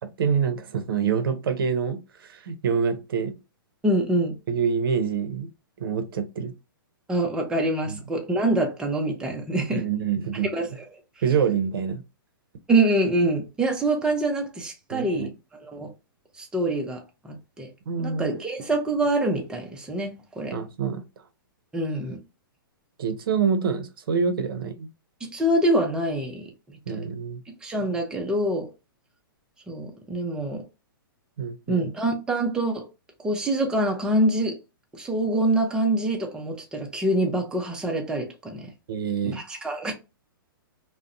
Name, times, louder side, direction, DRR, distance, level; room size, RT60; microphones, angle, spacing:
voice 1, 0.2-3.3 4.5-5.5 5.8-6.5 7.9-8.0 9.7-10.5 11.2-12.0 14.9-15.3 17.9-18.3 20.5-21.0 23.0-24.9 26.9-27.4 31.4-31.9 38.9-39.4, right 6 dB, 75° right, 0.6 m, -26 dB
voice 2, 3.8-4.4 7.1-9.8 10.4-10.8 12.7-15.3 15.6-15.9 16.4-17.7 18.0-20.5 21.7-22.2 25.2-26.5 26.9-27.0 27.6-28.7 29.7-30.6 31.7-32.9 33.2-34.6 34.9-38.7 39.2-39.9, right 1 dB, 5° right, 0.5 m, -25 dB
2.5 x 2.0 x 2.4 m
hypercardioid pair, 140°, 12 cm